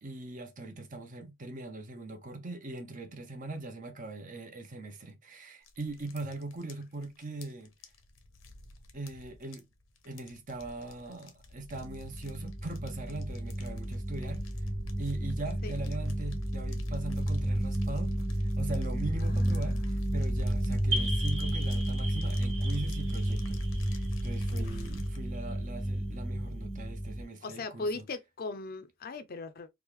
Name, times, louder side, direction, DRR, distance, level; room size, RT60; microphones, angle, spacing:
voice 1, 0.0-7.7 8.9-9.7 10.0-14.4 15.0-28.1, right 2 dB, 40° right, 0.8 m, -41 dB
sound 1, 5.6-25.2, left 1 dB, 85° left, 0.8 m, -47 dB
sound 2, 11.7-27.2, right 1 dB, 10° right, 0.4 m, -32 dB
voice 2, 19.2-19.8 24.5-24.6 27.4-29.7, left 3 dB, 45° left, 0.5 m, -39 dB
sound 3, 20.9-25.4, right 2 dB, 85° right, 1.6 m, -39 dB
3.6 x 2.4 x 3.0 m
head